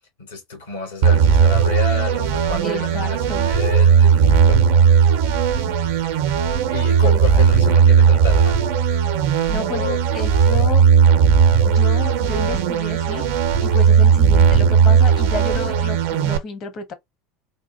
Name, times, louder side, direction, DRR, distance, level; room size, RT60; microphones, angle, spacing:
voice 1, 0.2-4.8 6.7-8.7 9.7-10.0, left 5 dB, 80° left, 1.6 m, -30 dB
sound 1, 1.0-16.4, right 7 dB, 65° right, 0.5 m, -16 dB
voice 2, 2.6-3.5 7.0-7.5 9.5-9.9 10.1-10.8 11.6-16.9, left 4 dB, 45° left, 0.8 m, -31 dB
3.6 x 2.4 x 2.6 m
figure-of-eight pair, 75°, 0 cm